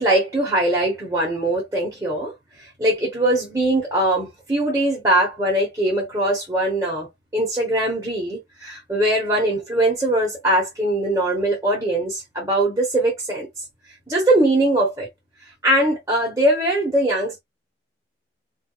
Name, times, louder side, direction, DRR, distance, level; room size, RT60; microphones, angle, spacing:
voice 1, 0.0-7.1 7.3-13.5 14.1-15.1 15.6-17.4, right 1 dB, 15° right, 0.8 m, -21 dB
2.3 x 2.1 x 2.9 m
head